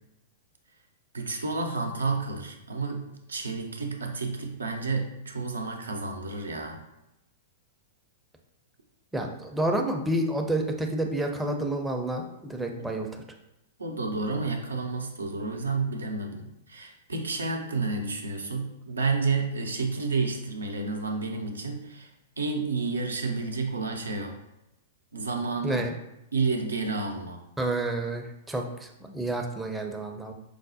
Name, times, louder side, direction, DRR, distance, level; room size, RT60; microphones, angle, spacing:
voice 1, 1.1-6.8 12.8-12.9 13.8-22.1 22.4-24.4 25.1-25.9 26.3-27.4, right 3 dB, 85° right, 3 dB, 0.5 m, -30 dB
voice 2, 9.1-13.1 25.6-25.9 27.6-30.3, right 1 dB, 5° right, 2 dB, 0.4 m, -29 dB
4.8 x 2.0 x 2.6 m, 0.88 s
figure-of-eight pair, 105°, 0 cm